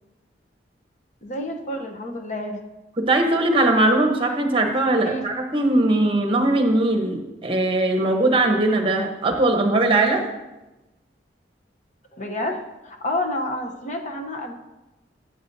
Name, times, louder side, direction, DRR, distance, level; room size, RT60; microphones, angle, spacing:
voice 1, 1.2-2.6 4.9-5.3 12.1-14.5, left 1 dB, 40° left, 3 dB, 0.9 m, -29 dB
voice 2, 3.0-10.2, right 2 dB, 30° right, 3 dB, 1.0 m, -20 dB
12.0 x 7.7 x 2.7 m, 1.0 s
head